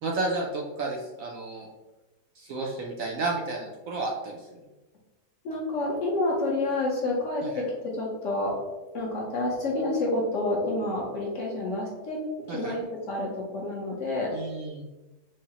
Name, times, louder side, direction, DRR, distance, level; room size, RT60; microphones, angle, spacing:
voice 1, 0.0-1.7 2.4-4.5 7.4-7.6 12.5-12.7 14.3-14.8, right 3 dB, 70° right, -2 dB, 0.9 m, -32 dB
voice 2, 5.4-8.5 8.9-12.2 12.5-14.3, left 2 dB, 55° left, -3 dB, 1.0 m, -29 dB
4.7 x 2.1 x 2.8 m, 1.1 s
omnidirectional pair, 1.7 m